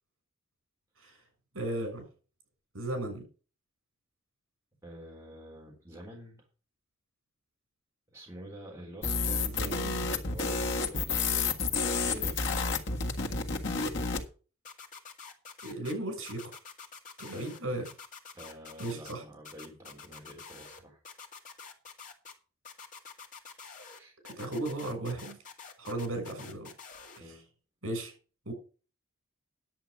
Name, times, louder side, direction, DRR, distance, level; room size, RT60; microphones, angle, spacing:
voice 1, 1.5-2.0 2.7-3.2 9.4-10.1 15.6-16.5 17.2-17.9 18.8-19.2 24.4-25.4 25.8-26.7 27.2-27.3 27.8-28.1 28.4-28.5, right 1 dB, 75° right, 5 dB, 6.4 m, -36 dB
voice 2, 4.8-6.4 8.1-9.7 10.1-11.5 11.9-12.6 18.3-21.0 23.9-24.1 27.2-27.5, equal, 15° right, -2 dB, 3.7 m, -48 dB
sound 1, 9.0-14.3, left 4 dB, 55° left, 1.7 m, -30 dB
sound 2, 14.6-15.9 16.2-17.6 17.8-19.1 19.4-20.8 21.0-22.3 22.6-24.0 24.2-27.2, left 5 dB, 40° left, 2.0 m, -47 dB
10.5 x 8.0 x 5.1 m, 0.36 s
head